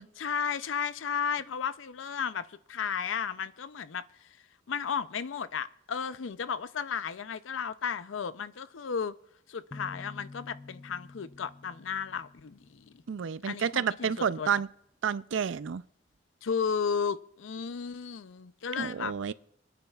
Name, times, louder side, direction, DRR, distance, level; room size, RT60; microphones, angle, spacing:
voice 1, 0.2-4.0 4.7-9.1 9.5-13.0 13.5-14.6 16.4-19.3, left 6 dB, 80° left, 0.5 m, -34 dB
sound 1, 9.7-13.4, left 3 dB, 20° left, 0.6 m, -49 dB
voice 2, 13.1-14.7 15.0-15.8 18.8-19.3, right 7 dB, 70° right, 0.4 m, -30 dB
27.0 x 9.8 x 2.4 m
head